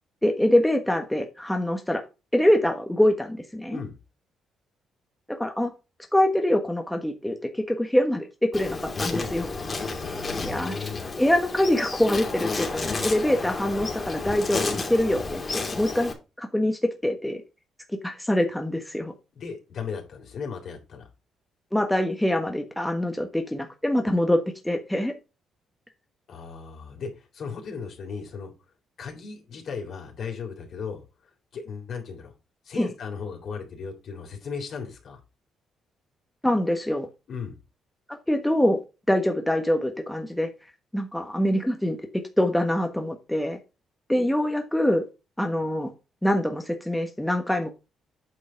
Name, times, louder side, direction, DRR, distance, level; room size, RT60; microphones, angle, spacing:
voice 1, 0.2-2.0 2.3-3.8 5.4-5.7 6.1-9.5 10.4-10.8 11.2-17.4 18.0-19.1 21.7-25.1 32.8-32.9 36.4-37.1 38.1-38.8 39.1-40.5 40.9-43.6 44.1-45.1 45.4-45.9 46.2-47.7, left 1 dB, 5° left, 1.3 m, -24 dB
Insect, 8.5-16.1, left 3 dB, 30° left, 2.7 m, -31 dB
voice 2, 10.0-11.0 19.3-21.1 24.0-24.1 26.3-28.5 29.0-31.0 31.5-32.3 32.6-35.2 37.3-37.6, left 5 dB, 60° left, 3.5 m, -36 dB
8.7 x 5.3 x 4.5 m
cardioid pair, 90°, 0 cm